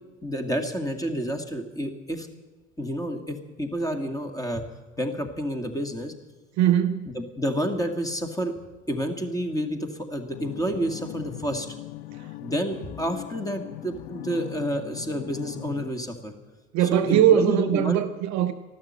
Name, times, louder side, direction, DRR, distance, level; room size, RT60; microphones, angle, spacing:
voice 1, 0.2-2.3 2.8-4.6 5.0-6.1 7.0-8.5 8.9-11.7 12.4-16.3 16.9-18.0, equal, 10° left, 6 dB, 1.9 m, -29 dB
voice 2, 6.6-7.1 12.1-12.3 16.7-18.5, right 10 dB, 45° right, 8 dB, 0.8 m, -21 dB
sound 1, 10.3-15.9, left 17 dB, 55° left, 0.6 m, -40 dB
13.5 x 12.0 x 7.5 m, 1.2 s
figure-of-eight pair, 70°, 41 cm